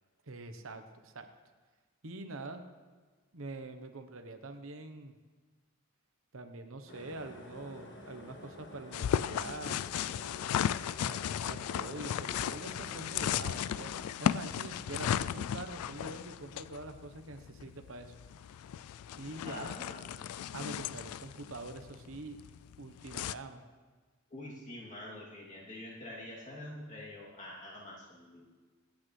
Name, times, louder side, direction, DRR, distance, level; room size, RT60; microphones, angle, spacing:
voice 1, 0.3-1.3 2.0-2.6 3.3-5.1 6.3-9.9 11.1-13.9 14.2-18.1 19.1-19.7 20.5-22.4 22.8-23.6, right 2 dB, 65° right, 6 dB, 1.0 m, -45 dB
sound 1, 6.9-14.1, left 1 dB, 55° left, 1.3 m, -50 dB
sound 2, 8.9-23.3, left 9 dB, 80° left, 0.3 m, -36 dB
voice 2, 19.4-20.2 24.3-28.4, left 1 dB, 35° left, -5 dB, 2.8 m, -46 dB
24.5 x 8.6 x 3.2 m, 1.4 s
head